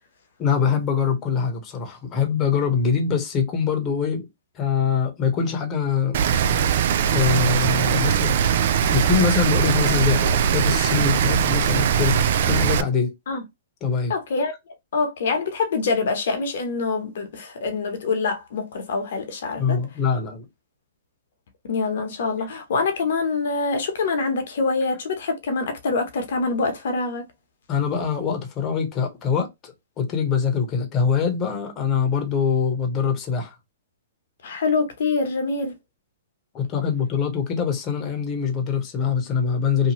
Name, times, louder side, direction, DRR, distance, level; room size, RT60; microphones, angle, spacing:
voice 1, 0.4-4.3 4.6-6.2 7.1-8.4 8.9-12.2 12.4-13.1 13.8-14.1 19.6-20.5 27.7-33.5 36.5-39.9, left 6 dB, 30° left, 0.9 m, -23 dB
Rain, 6.1-12.8, right 8 dB, 60° right, 0.3 m, -20 dB
voice 2, 14.1-14.5 14.9-19.8 21.7-27.3 34.4-35.7, left 4 dB, 65° left, 1.0 m, -25 dB
2.8 x 2.3 x 2.9 m
hypercardioid pair, 130°, 0 cm